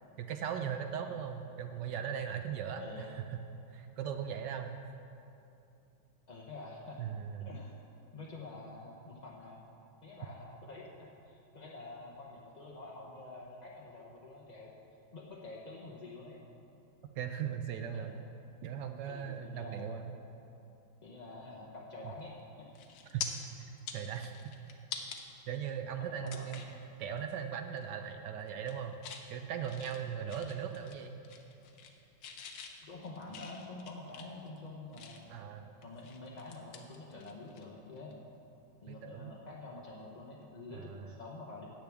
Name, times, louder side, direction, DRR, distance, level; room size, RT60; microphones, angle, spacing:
voice 1, 0.2-3.4 3.7-4.7 7.0-7.5 17.1-18.1 18.6-20.1 22.0-22.1 23.1-23.3 23.6-24.3 25.5-26.7 27.0-29.0 29.3-31.2 35.3-35.7 38.9-39.3 40.7-41.2, right 8 dB, 70° right, 6 dB, 1.1 m, -39 dB
voice 2, 2.7-3.2 6.3-7.0 7.4-7.7 8.1-9.6 10.0-14.7 15.1-16.4 17.9-18.2 19.1-20.0 21.0-22.7 26.0-26.6 32.8-35.3 35.8-38.2 38.8-41.7, left 2 dB, 50° left, -4 dB, 0.5 m, -48 dB
sound 1, 22.2-22.4 22.8-23.3 23.7-25.2 25.7-25.8 26.3-26.8 27.2-27.4 27.7-28.1 28.5-29.3 29.6-31.0 31.2-32.0 32.2-35.4 35.8-37.6 37.9-38.1 40.0-40.2, left 7 dB, 70° left, 1.4 m, -46 dB
15.5 x 8.6 x 3.5 m, 2.7 s
omnidirectional pair, 2.2 m